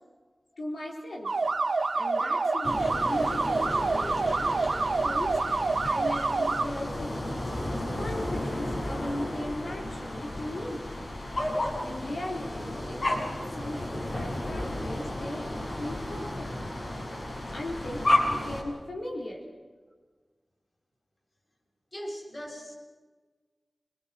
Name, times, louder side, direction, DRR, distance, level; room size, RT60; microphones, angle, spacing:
voice 1, 0.6-1.3 1.9-4.7 5.0-7.4 7.9-10.9 11.8-16.5 17.5-19.4, left 1 dB, 85° left, -2 dB, 4.3 m, -38 dB
sound 1, 1.3-6.7, right 3 dB, 85° right, 1.6 m, -27 dB
sound 2, 2.6-18.6, left 1 dB, 65° left, 7.1 m, -32 dB
voice 2, 21.9-22.7, equal, 35° left, 1 dB, 6.3 m, -39 dB
28.5 x 21.5 x 6.1 m, 1.4 s
wide cardioid pair, 55°, 0 cm